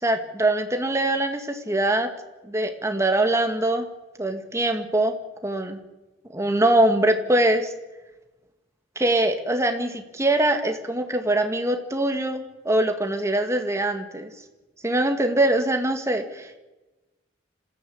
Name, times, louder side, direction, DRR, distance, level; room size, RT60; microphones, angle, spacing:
voice 1, 0.0-2.1 2.4-3.9 4.2-5.1 5.4-5.8 6.3-7.7 9.0-14.3 14.8-16.6, right 1 dB, 15° right, 6 dB, 2.3 m, -23 dB
26.5 x 15.5 x 8.8 m, 1.1 s
head